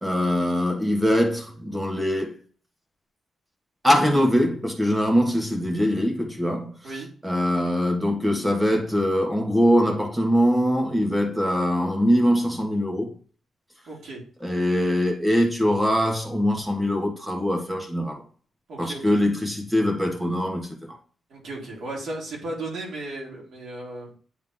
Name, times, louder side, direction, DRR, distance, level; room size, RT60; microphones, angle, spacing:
voice 1, 0.0-2.4 3.8-6.8 7.2-13.1 14.4-18.2 18.8-20.9, equal, 10° right, 1.7 m, -22 dB
voice 2, 13.9-14.2 18.7-19.2 21.3-24.1, right 2 dB, 60° right, 3.6 m, -35 dB
9.5 x 3.7 x 3.7 m
wide cardioid pair, 145°, 0 cm